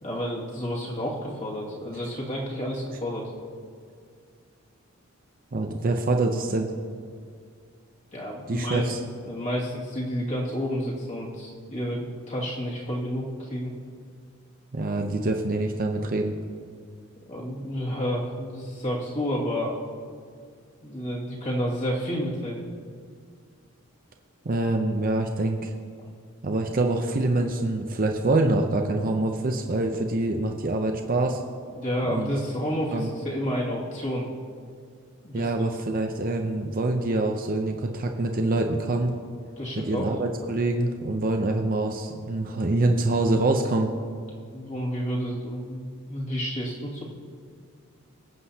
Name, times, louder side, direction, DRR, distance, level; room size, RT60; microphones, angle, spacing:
voice 1, 0.0-3.3 8.1-8.9 9.3-13.7 17.3-19.7 20.8-22.7 31.7-34.3 35.2-35.5 39.6-40.2 44.5-47.0, equal, 35° left, -4 dB, 2.3 m, -30 dB
voice 2, 5.5-6.7 8.5-9.0 14.7-16.3 24.4-25.7 26.4-31.4 32.1-32.3 32.9-33.1 35.3-39.1 39.8-43.9, right 2 dB, 45° right, 3 dB, 0.6 m, -25 dB
22.0 x 7.8 x 2.8 m, 2.2 s
head